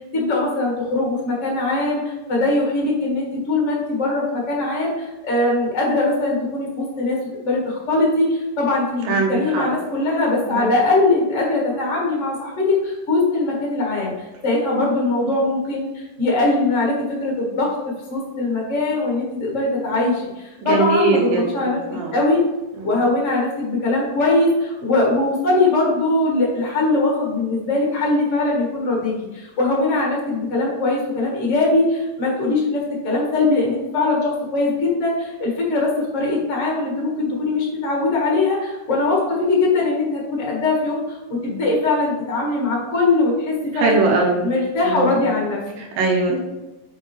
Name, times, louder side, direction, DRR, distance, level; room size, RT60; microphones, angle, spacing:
voice 1, 0.1-7.2 7.4-14.1 14.4-16.9 17.2-17.7 18.1-21.8 22.1-22.4 22.8-44.0 44.4-45.6 46.3-46.4, left 2 dB, 45° left, -3 dB, 0.9 m, -21 dB
voice 2, 9.0-9.6 10.5-10.7 20.6-22.2 22.7-22.9 43.7-44.5 44.8-45.2 45.8-46.4, right 3 dB, 85° right, -1 dB, 2.8 m, -21 dB
7.0 x 4.5 x 3.2 m, 1.0 s
omnidirectional pair, 4.0 m